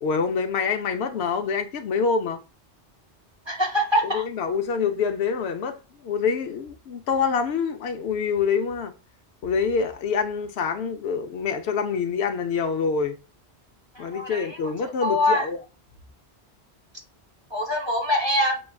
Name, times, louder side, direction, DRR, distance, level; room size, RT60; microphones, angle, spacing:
voice 1, 0.0-2.4 4.0-8.9 9.4-13.2 14.0-15.6, left 5 dB, 80° left, 0.9 m, -26 dB
voice 2, 3.5-4.2 14.0-14.5 15.0-15.4 17.5-18.6, left 1 dB, 25° right, 0.9 m, -23 dB
6.0 x 2.3 x 2.2 m
omnidirectional pair, 1.1 m